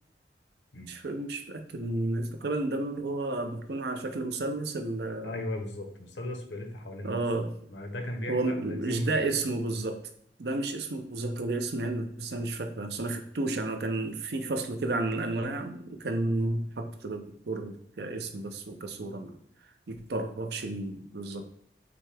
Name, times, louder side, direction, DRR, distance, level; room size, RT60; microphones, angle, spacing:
voice 1, 0.9-5.4 7.0-7.6 8.3-10.0 10.4-19.4 19.9-21.5, right 2 dB, 65° right, 6 dB, 0.6 m, -32 dB
voice 2, 5.2-7.2 7.7-9.2 16.4-16.5, left 1 dB, 90° left, 3 dB, 0.9 m, -37 dB
6.0 x 2.2 x 3.4 m, 0.67 s
head